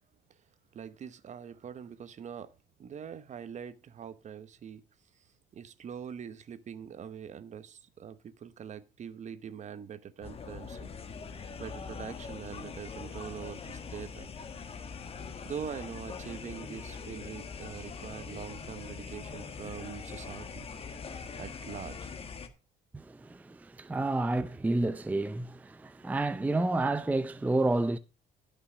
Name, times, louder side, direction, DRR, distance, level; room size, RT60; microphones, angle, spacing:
voice 1, 0.7-2.5 2.8-4.8 5.5-10.9 11.6-14.3 15.4-20.7 21.4-22.1, right 8 dB, 45° right, 0.9 m, -43 dB
sound 1, 10.2-22.5, left 5 dB, 35° left, 1.4 m, -42 dB
voice 2, 22.9-28.0, right 2 dB, 10° right, 0.5 m, -30 dB
13.0 x 5.6 x 5.1 m
cardioid pair, 110°, 17 cm